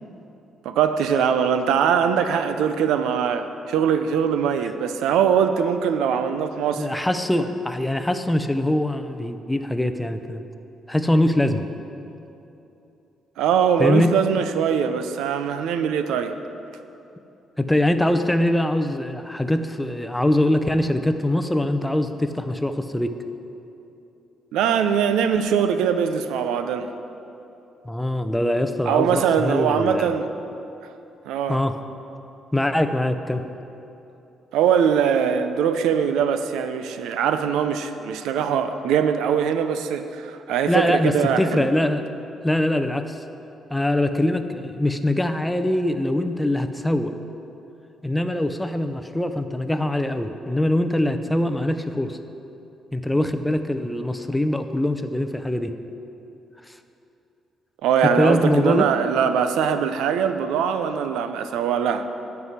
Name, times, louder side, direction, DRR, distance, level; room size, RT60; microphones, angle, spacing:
voice 1, 0.6-6.9 13.4-16.4 24.5-26.9 28.9-30.3 31.3-31.6 34.5-41.7 57.8-62.1, right 7 dB, 90° right, 9 dB, 0.5 m, -22 dB
voice 2, 6.8-10.4 10.9-11.7 13.8-14.2 17.6-23.1 27.8-30.1 31.5-31.8 32.5-33.4 40.7-42.0 42.4-43.2 43.7-47.1 48.0-52.2 52.9-55.7 56.7-56.8 58.0-58.9, left 1 dB, 5° left, 9 dB, 0.6 m, -23 dB
11.0 x 4.7 x 8.0 m, 2.9 s
cardioid pair, 90°, 0 cm